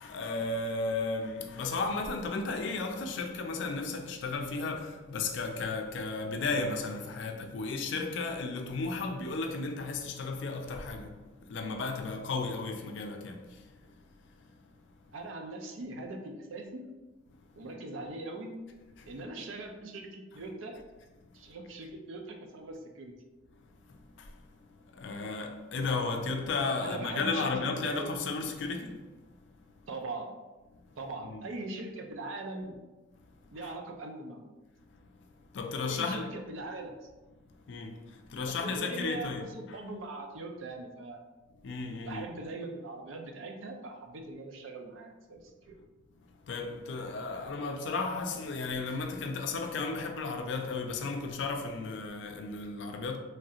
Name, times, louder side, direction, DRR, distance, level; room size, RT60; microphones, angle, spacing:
voice 1, 0.0-15.1 17.3-17.6 19.0-19.1 21.2-21.6 23.5-29.9 30.7-31.0 31.2-31.4 33.2-33.7 34.9-36.3 37.4-39.8 41.6-42.3 46.2-53.2, left 3 dB, 65° left, 0.4 m, -35 dB
voice 2, 15.1-16.8 17.6-18.6 19.1-20.7 21.3-23.1 26.8-27.5 27.8-28.1 29.9-30.3 31.0-32.8 33.5-34.5 35.9-36.9 38.4-41.2 42.0-45.8, right 2 dB, 85° right, 0.5 m, -41 dB
3.2 x 2.8 x 2.4 m
head